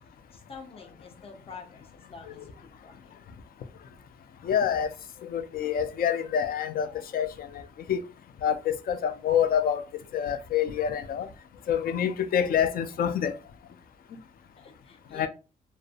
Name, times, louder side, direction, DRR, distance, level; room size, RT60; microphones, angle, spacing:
voice 1, 0.3-3.1 14.6-15.3, left 5 dB, 35° left, 0.7 m, -47 dB
voice 2, 4.4-4.9 5.2-6.9 7.1-7.6 7.9-8.0 8.4-9.8 10.1-11.3 11.7-13.3 15.1-15.3, left 8 dB, 65° left, 0.4 m, -26 dB
2.5 x 2.0 x 2.5 m
cardioid pair, 60°, 17 cm